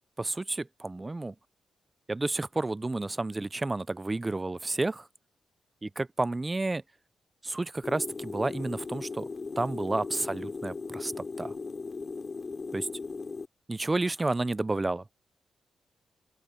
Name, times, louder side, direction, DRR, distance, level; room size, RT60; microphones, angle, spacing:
voice 1, 0.2-1.3 2.1-5.1 5.8-6.8 7.4-9.3 9.6-11.1 11.4-11.5 12.7-12.9 13.7-15.0, right 2 dB, 15° right, 0.4 m, -31 dB
sound 1, 7.8-13.5, left 4 dB, 30° left, 3.0 m, -38 dB
open air
wide cardioid pair, 150°, 0 cm